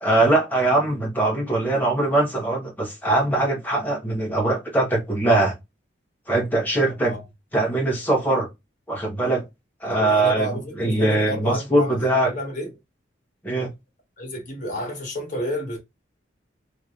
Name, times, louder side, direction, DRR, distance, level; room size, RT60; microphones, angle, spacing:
voice 1, 0.0-5.5 6.3-7.1 7.5-8.5 8.9-9.4 9.8-10.5 10.8-12.3 13.4-13.7, right 2 dB, 10° left, 1.1 m, -21 dB
voice 2, 6.8-7.2 9.8-12.7 14.2-15.8, equal, 45° left, 1.6 m, -30 dB
3.2 x 3.1 x 2.5 m
head